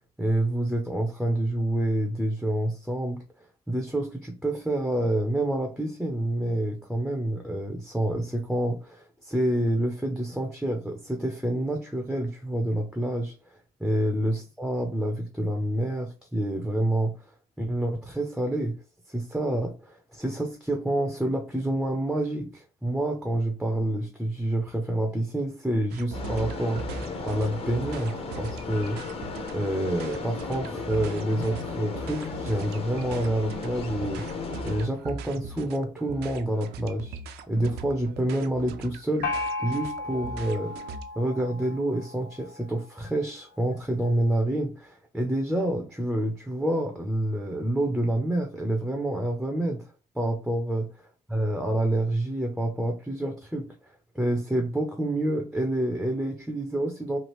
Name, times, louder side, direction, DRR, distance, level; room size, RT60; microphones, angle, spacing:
voice 1, 0.2-3.2 3.7-13.3 13.8-17.1 17.6-18.7 19.1-29.2 29.5-34.2 34.6-37.2 37.5-40.7 41.2-50.9 51.3-53.7 54.1-57.2, right 1 dB, ahead, 3 dB, 0.4 m, -28 dB
sound 1, 25.9-41.1, right 4 dB, 75° right, 0.4 m, -40 dB
sound 2, 26.1-34.9, left 4 dB, 35° left, 0.7 m, -35 dB
Gong, 39.2-42.7, left 3 dB, 85° left, 0.5 m, -34 dB
3.1 x 2.4 x 2.9 m, 0.34 s
cardioid pair, 110°, 17 cm